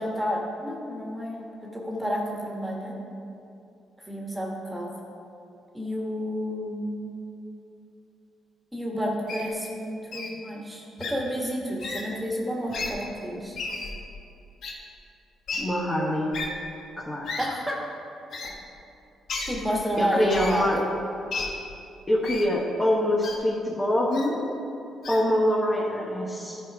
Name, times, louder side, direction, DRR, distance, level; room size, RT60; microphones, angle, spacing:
voice 1, 0.0-1.4 1.7-2.9 4.1-4.9 5.7-7.1 8.7-13.6 17.4-17.8 18.4-18.5 19.5-20.8, equal, 10° right, -2 dB, 1.8 m, -30 dB
Wild animals, 9.3-9.5 10.1-10.3 11.0-11.1 11.8-12.0 12.7-12.9 13.5-13.9 14.6-14.7 15.5-15.6 16.3-16.5 17.3-17.5 18.3-18.5 19.3-19.5 20.3-20.6 21.3-21.5 22.2-22.5 23.2-23.4 24.1-24.3 25.0-25.2, left 4 dB, 70° left, 1.4 m, -33 dB
voice 2, 15.6-16.3 17.0-17.4 20.0-20.8 22.1-24.4 25.1-26.6, left 1 dB, 20° left, -4 dB, 1.2 m, -25 dB
13.0 x 4.9 x 4.9 m, 2.7 s
cardioid pair, 90°, 0 cm